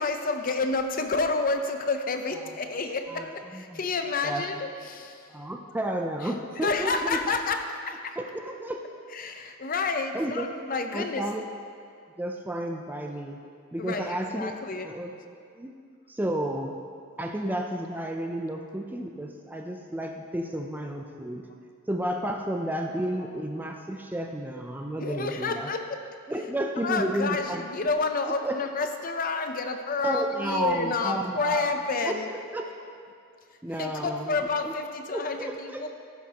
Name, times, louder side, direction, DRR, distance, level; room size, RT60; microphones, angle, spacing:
voice 1, 0.0-5.2 6.6-8.2 9.1-11.2 13.8-14.9 25.0-26.0 26.8-32.3 33.7-35.9, left 3 dB, 40° left, 6 dB, 0.6 m, -29 dB
voice 2, 3.1-3.8 4.2-4.5 5.3-7.2 8.2-8.8 10.1-10.4 10.9-11.4 12.2-13.4 13.7-14.5 14.8-15.1 15.6-15.7 16.1-16.8 17.2-21.4 21.9-25.7 26.3-27.6 28.4-28.6 30.0-31.7 32.0-32.2 32.5-32.7 33.6-34.4 34.6-34.7 35.1-35.8, right 1 dB, 10° right, 3 dB, 0.4 m, -31 dB
15.0 x 7.3 x 2.9 m, 2.3 s
head